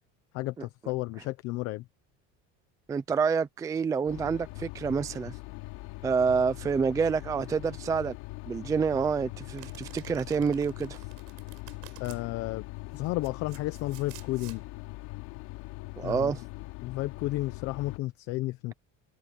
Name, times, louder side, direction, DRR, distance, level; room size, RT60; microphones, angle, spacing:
voice 1, 0.3-1.8 12.0-12.7 12.9-14.6 16.0-16.3 16.8-18.7, left 18 dB, 50° left, 0.8 m, -32 dB
voice 2, 2.9-5.3 6.0-8.1 8.5-11.0 16.0-16.4, right 5 dB, 10° right, 0.4 m, -28 dB
sound 1, 4.1-18.0, left 21 dB, 75° left, 2.9 m, -42 dB
Domestic sounds home sounds, 9.6-12.2 12.9-14.6, right 30 dB, 75° right, 6.4 m, -51 dB
cardioid pair, 180°, 31 cm